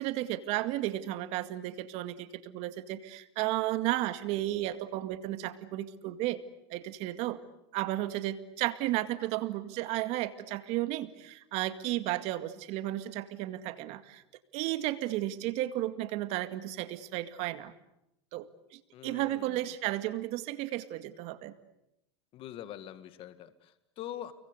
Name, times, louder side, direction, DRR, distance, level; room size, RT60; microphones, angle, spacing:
voice 1, 0.0-6.4 6.7-7.4 7.7-14.2 14.5-17.7 18.3-21.5, right 15 dB, 50° right, 11 dB, 2.1 m, -33 dB
voice 2, 18.9-19.6 22.3-24.3, left 11 dB, 40° left, 11 dB, 2.0 m, -44 dB
29.5 x 23.0 x 8.2 m, 0.85 s
supercardioid pair, 120°, 14 cm